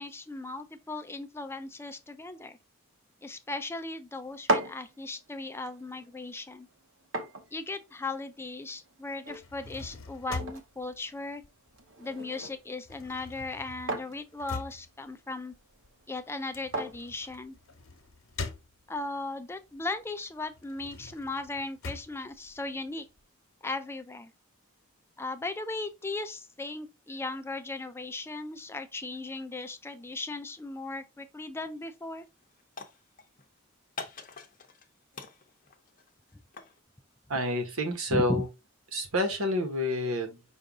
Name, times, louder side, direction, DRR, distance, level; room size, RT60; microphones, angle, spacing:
voice 1, 0.0-2.6 3.2-6.7 7.5-11.4 12.0-15.5 16.1-17.6 18.9-23.1 23.6-24.3 25.2-32.3 38.1-38.4, left 2 dB, 10° left, 0.4 m, -37 dB
sound 1, 4.2-18.1, right 2 dB, 65° right, 0.9 m, -39 dB
sound 2, 9.3-12.1 12.4-19.2 19.7-23.2, left 3 dB, 75° left, 1.0 m, -43 dB
sound 3, 31.6-31.9 32.2-33.4 34.0-34.9 35.1-36.8, left 4 dB, 40° left, 0.7 m, -44 dB
voice 2, 37.3-38.4 38.9-40.4, left 1 dB, 85° right, 1.3 m, -28 dB
5.6 x 2.6 x 3.6 m
head